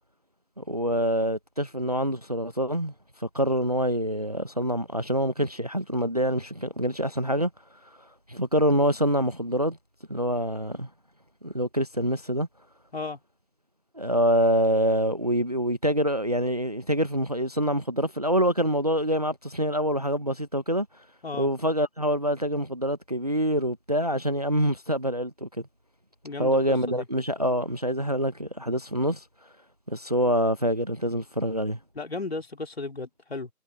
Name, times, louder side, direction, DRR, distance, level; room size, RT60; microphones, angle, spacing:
voice 1, 0.6-2.9 3.2-7.5 8.3-9.8 10.1-10.9 11.4-12.5 13.9-20.9 21.4-25.5 26.4-29.2 29.9-31.8, equal, 25° right, 1.1 m, -25 dB
voice 2, 26.2-27.0 31.9-33.5, left 3 dB, 40° left, 3.3 m, -35 dB
figure-of-eight pair, 165°, 47 cm